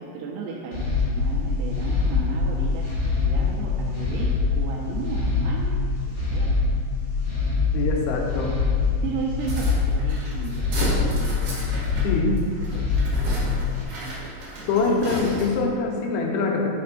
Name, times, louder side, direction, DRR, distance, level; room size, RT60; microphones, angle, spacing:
voice 1, 0.0-2.9 3.2-6.5 9.0-11.9 12.7-13.3 14.9-15.0, right 5 dB, 90° right, -2 dB, 2.7 m, -35 dB
sound 1, 0.7-13.8, left 4 dB, 60° left, 1.6 m, -24 dB
voice 2, 7.7-8.5 12.0-12.4 14.7-16.7, left 4 dB, 75° left, 0 dB, 2.6 m, -24 dB
sound 2, 9.4-15.7, right 1 dB, 60° right, 2.8 m, -33 dB
11.0 x 5.2 x 2.6 m, 2.2 s
omnidirectional pair, 4.7 m